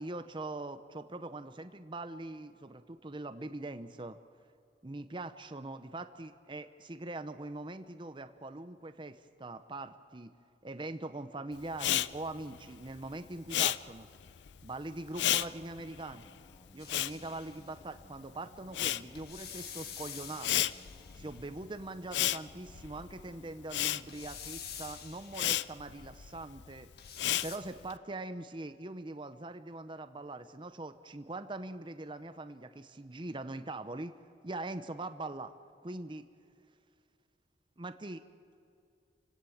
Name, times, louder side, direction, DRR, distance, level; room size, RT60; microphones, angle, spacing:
voice 1, 0.0-4.2 4.8-10.3 10.6-14.1 14.6-16.3 16.7-20.7 21.2-26.9 27.4-34.1 34.4-35.5 35.8-36.3 37.8-38.2, right 2 dB, 30° right, 10 dB, 0.8 m, -42 dB
Respiratory sounds, 11.7-18.2 18.5-27.9, left 12 dB, 85° left, 0.5 m, -34 dB
sound 1, 15.3-24.3, equal, 20° left, 1.4 m, -61 dB
sound 2, 16.8-17.7 19.1-21.4 24.1-25.6 27.0-27.6, left 8 dB, 65° left, 1.9 m, -47 dB
29.5 x 17.0 x 7.2 m, 2.5 s
head